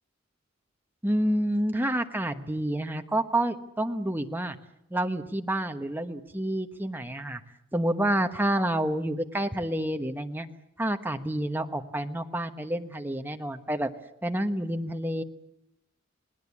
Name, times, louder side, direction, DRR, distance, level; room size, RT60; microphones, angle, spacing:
voice 1, 1.0-4.6 4.9-7.4 7.7-10.5 10.8-13.9 14.2-15.2, right 1 dB, 10° right, 6 dB, 1.2 m, -28 dB
28.5 x 19.5 x 8.6 m, 0.81 s
head